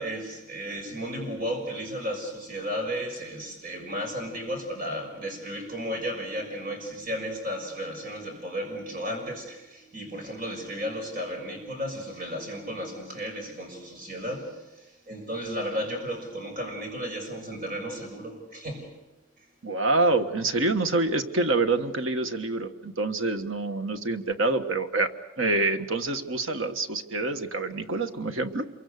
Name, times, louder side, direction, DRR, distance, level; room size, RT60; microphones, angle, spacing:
voice 1, 0.0-19.0, equal, 40° right, 3 dB, 6.0 m, -34 dB
voice 2, 19.6-25.1 25.4-28.6, right 2 dB, 70° right, 7 dB, 1.5 m, -26 dB
27.0 x 23.5 x 6.7 m, 1.1 s
head